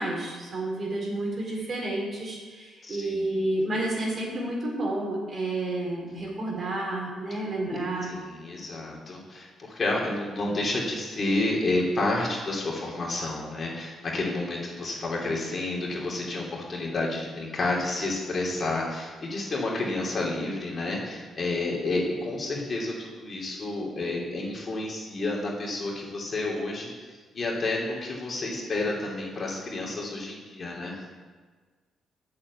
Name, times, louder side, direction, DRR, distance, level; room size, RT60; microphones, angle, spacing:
voice 1, 0.0-8.1, right 1 dB, 45° right, -2 dB, 4.1 m, -30 dB
voice 2, 2.8-3.4 7.7-26.9 27.3-30.9, left 2 dB, 40° left, -3 dB, 3.1 m, -30 dB
8.6 x 7.5 x 8.2 m, 1.4 s
cardioid pair, 90°, 0 cm